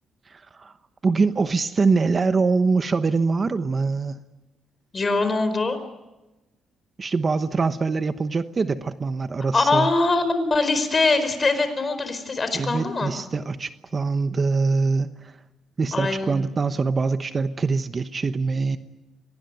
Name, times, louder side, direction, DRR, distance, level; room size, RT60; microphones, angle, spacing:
voice 1, 0.3-0.7 1.0-4.2 7.0-9.9 12.5-15.3 15.8-18.8, right 4 dB, 35° right, 10 dB, 1.1 m, -23 dB
voice 2, 4.9-5.8 9.5-13.1 15.9-16.4, left 3 dB, 30° left, 10 dB, 4.5 m, -22 dB
24.5 x 19.0 x 9.2 m, 1.1 s
cardioid pair, 90°, 0 cm